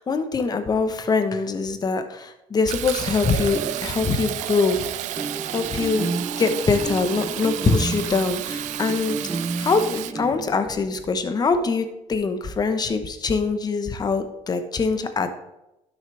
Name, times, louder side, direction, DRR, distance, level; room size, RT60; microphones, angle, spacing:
voice 1, 0.0-4.9 5.1-9.2 9.6-15.3, left 4 dB, 30° left, 8 dB, 1.1 m, -23 dB
Fill (with liquid), 2.7-10.1, right 14 dB, 65° right, 0.4 m, -32 dB
sound 1, 3.4-11.1, right 3 dB, 20° right, 0.9 m, -33 dB
12.0 x 6.5 x 3.4 m, 0.92 s
cardioid pair, 105°, 13 cm